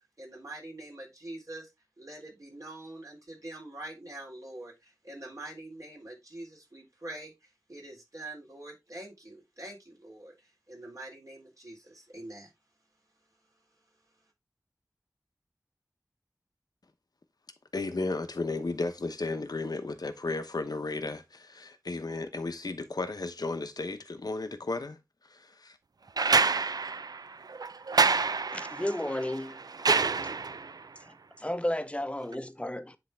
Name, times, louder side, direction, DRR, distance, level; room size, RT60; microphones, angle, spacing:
voice 1, 0.2-1.7 2.0-12.5, right 1 dB, 60° right, 3.6 m, -45 dB
voice 2, 17.7-25.0 25.3-25.8, left 3 dB, 85° left, 0.9 m, -34 dB
sound 1, 26.2-30.8 32.3-32.4, right 4 dB, 80° right, 0.4 m, -27 dB
voice 3, 28.5-29.6 31.0-33.0, left 1 dB, 20° left, 0.7 m, -33 dB
10.0 x 3.5 x 3.3 m
wide cardioid pair, 55°, 7 cm